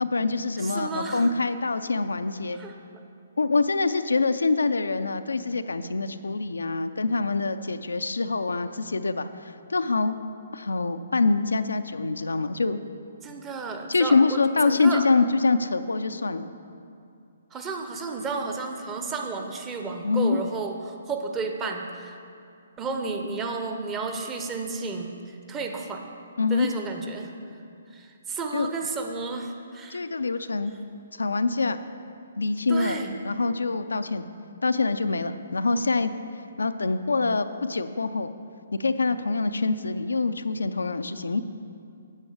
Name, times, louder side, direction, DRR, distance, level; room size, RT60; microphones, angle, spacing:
voice 1, 0.0-2.6 3.4-9.3 9.7-10.1 10.5-12.8 13.9-16.5 20.0-20.4 26.4-26.7 28.5-28.7 29.9-30.7 31.2-31.8 32.4-34.2 34.6-36.1 36.6-38.3 38.7-41.4, left 3 dB, 75° left, 10 dB, 0.4 m, -25 dB
voice 2, 0.6-1.3 2.5-2.7 13.2-15.1 17.5-22.2 22.8-26.1 26.5-27.4 27.9-30.0 32.7-33.1, right 4 dB, 20° right, 3 dB, 0.8 m, -32 dB
9.6 x 7.6 x 4.9 m, 2.5 s
figure-of-eight pair, 130°, 0 cm